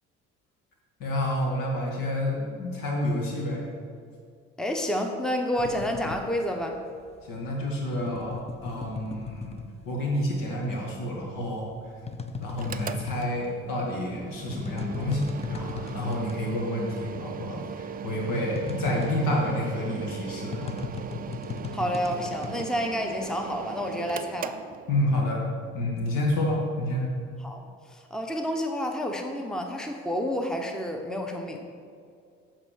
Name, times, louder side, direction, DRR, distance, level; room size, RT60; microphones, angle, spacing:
voice 1, 1.0-3.6 7.2-9.6 9.9-11.7 12.4-20.8 24.9-25.5 25.7-27.1, left 1 dB, 70° left, -1 dB, 2.0 m, -29 dB
voice 2, 4.6-6.8 21.7-24.6 27.4-31.6, equal, ahead, 3 dB, 0.9 m, -29 dB
sound 1, 5.6-10.3 10.6-16.5 16.8-16.9 17.2-23.6, left 5 dB, 20° left, 0.6 m, -37 dB
Mechanical fan, 12.5-25.3, right 7 dB, 30° right, 0.4 m, -39 dB
7.5 x 4.3 x 6.5 m, 2.3 s
supercardioid pair, 65°, 33 cm